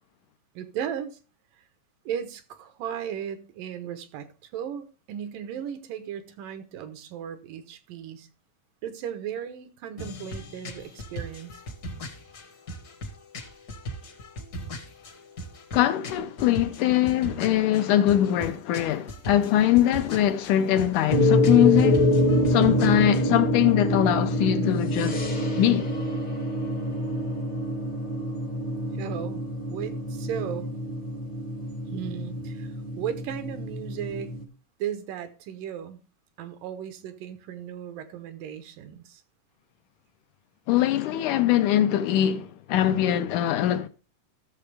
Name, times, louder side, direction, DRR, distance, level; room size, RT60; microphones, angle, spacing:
voice 1, 0.6-1.2 2.1-8.3 8.8-11.6 28.9-29.4 29.7-30.7 31.9-34.3 34.8-36.0 36.4-39.2, right 9 dB, 80° right, 2.6 m, -36 dB
sound 1, 10.0-23.3, equal, 50° left, 1.2 m, -39 dB
voice 2, 15.7-22.0 22.5-25.3 25.6-25.9 40.7-43.9, left 12 dB, 75° left, 2.1 m, -22 dB
sound 2, 21.1-34.4, equal, 30° left, 0.7 m, -26 dB
14.0 x 6.8 x 3.3 m
omnidirectional pair, 3.8 m